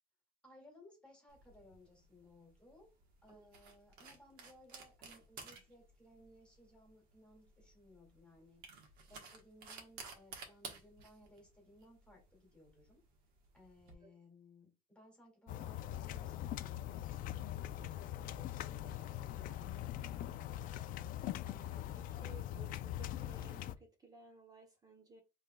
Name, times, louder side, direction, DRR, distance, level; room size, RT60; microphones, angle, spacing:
voice 1, 0.4-2.9 3.2-13.0 13.5-20.0, left 1 dB, 5° left, 2.0 m, -62 dB
sound 1, 1.3-13.9, right 5 dB, 85° right, 1.2 m, -55 dB
sound 2, 15.5-23.8, left 12 dB, 60° left, 0.4 m, -42 dB
voice 2, 21.4-25.2, right 4 dB, 25° right, 0.8 m, -58 dB
5.1 x 3.2 x 2.2 m
cardioid pair, 130°, 16 cm